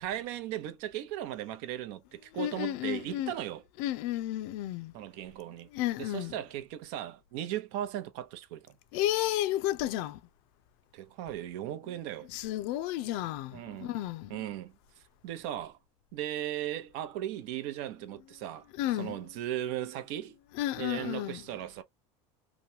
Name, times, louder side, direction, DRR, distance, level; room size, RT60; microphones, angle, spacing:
voice 1, 0.0-3.6 4.9-5.7 6.0-8.7 10.9-12.3 13.5-14.0 14.3-15.8 16.1-18.7 19.0-20.4 20.8-21.8, right 12 dB, 65° right, 0.7 m, -37 dB
voice 2, 2.3-3.3 3.8-4.9 5.7-6.3 8.9-10.2 12.3-14.4 18.8-19.2 20.6-21.4, left 14 dB, 65° left, 0.5 m, -32 dB
3.0 x 2.2 x 2.7 m
supercardioid pair, 125°, 15 cm